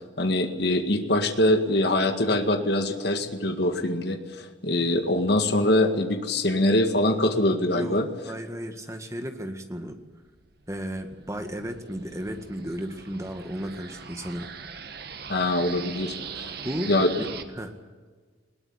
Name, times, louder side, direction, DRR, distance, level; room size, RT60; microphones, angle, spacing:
voice 1, 0.2-8.1 15.3-16.1 16.9-17.1, left 1 dB, 55° left, 5 dB, 2.0 m, -23 dB
voice 2, 8.3-10.0 10.7-14.5 16.6-16.9 17.2-17.7, equal, 15° right, 6 dB, 1.8 m, -34 dB
sound 1, 10.1-17.4, right 6 dB, 55° right, 1.6 m, -41 dB
20.5 x 18.0 x 9.9 m, 1.5 s
head